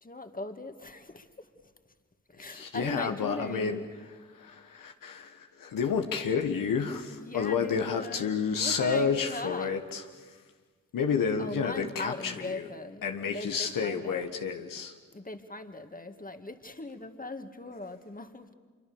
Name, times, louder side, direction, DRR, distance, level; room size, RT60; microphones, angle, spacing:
voice 1, 0.0-1.5 2.3-3.9 7.1-9.7 11.4-13.1 13.3-14.2 15.1-18.5, left 2 dB, 25° left, 7 dB, 2.0 m, -40 dB
voice 2, 2.4-3.8 4.3-10.0 10.9-12.7 13.0-14.9, left 6 dB, 90° left, 6 dB, 1.3 m, -30 dB
25.5 x 23.5 x 7.0 m, 1.5 s
cardioid pair, 40°, 33 cm